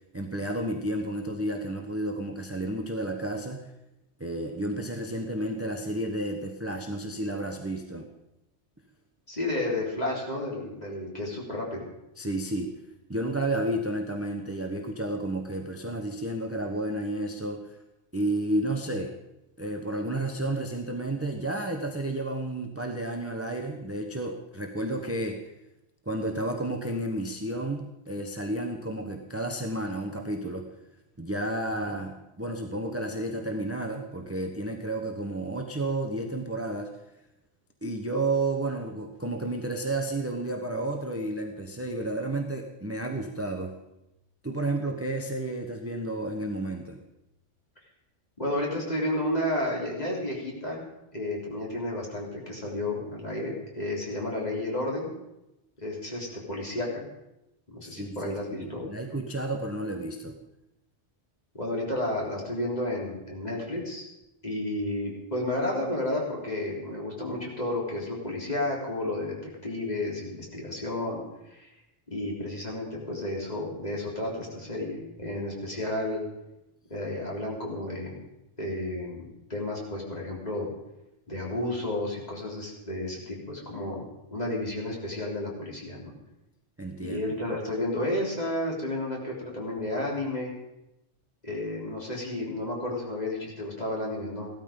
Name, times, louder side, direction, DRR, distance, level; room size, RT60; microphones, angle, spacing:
voice 1, 0.1-3.7 4.2-8.1 12.2-12.7 13.1-17.8 18.1-19.1 19.6-25.5 26.1-30.7 31.2-36.9 37.8-43.8 44.4-47.0 57.8-60.3 86.8-87.2, right 1 dB, 15° right, 3 dB, 1.0 m, -31 dB
voice 2, 9.3-11.8 31.8-31.9 48.4-50.8 51.1-55.1 55.8-57.0 57.7-58.9 61.5-64.1 64.4-69.3 69.6-71.2 71.5-71.7 72.1-76.2 76.9-78.2 78.6-80.7 81.3-86.1 87.0-90.5 91.4-94.5, left 1 dB, 35° left, -3 dB, 3.8 m, -32 dB
16.0 x 13.0 x 5.2 m, 0.91 s
omnidirectional pair, 1.2 m